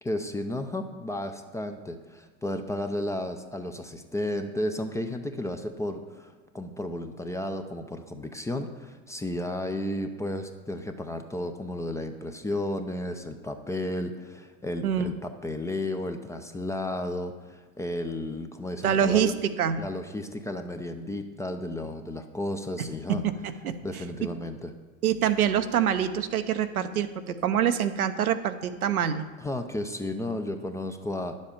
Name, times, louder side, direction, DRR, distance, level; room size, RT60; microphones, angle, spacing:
voice 1, 0.0-19.3 19.8-23.2 23.8-24.7 29.4-31.4, left 1 dB, 5° left, 6 dB, 0.5 m, -33 dB
voice 2, 18.8-19.8 22.8-23.8 25.0-29.2, right 9 dB, 85° right, 9 dB, 0.8 m, -25 dB
10.0 x 7.5 x 5.1 m, 1.4 s
hypercardioid pair, 95°, 42 cm